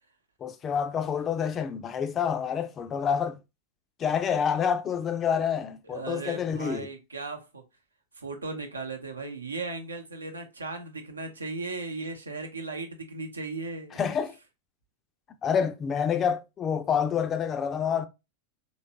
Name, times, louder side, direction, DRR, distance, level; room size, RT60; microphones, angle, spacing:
voice 1, 0.4-3.4 4.0-6.9 13.9-14.3 15.4-18.1, left 7 dB, 25° left, 0.4 m, -28 dB
voice 2, 5.9-7.6 8.2-14.0, right 3 dB, 75° right, 0.8 m, -36 dB
3.1 x 3.1 x 2.7 m
figure-of-eight pair, 90°, 0 cm